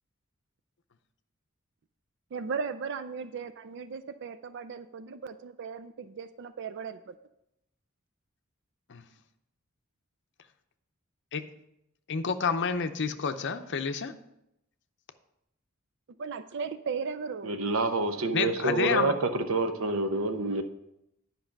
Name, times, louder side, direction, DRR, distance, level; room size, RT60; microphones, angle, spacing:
voice 1, 2.3-7.2 16.2-17.6, right 5 dB, 55° right, 12 dB, 0.4 m, -37 dB
voice 2, 12.1-14.1 18.3-19.1, left 5 dB, 60° left, 8 dB, 0.7 m, -29 dB
voice 3, 17.4-20.6, right 3 dB, 75° right, 7 dB, 0.9 m, -27 dB
10.0 x 5.4 x 5.8 m, 0.83 s
head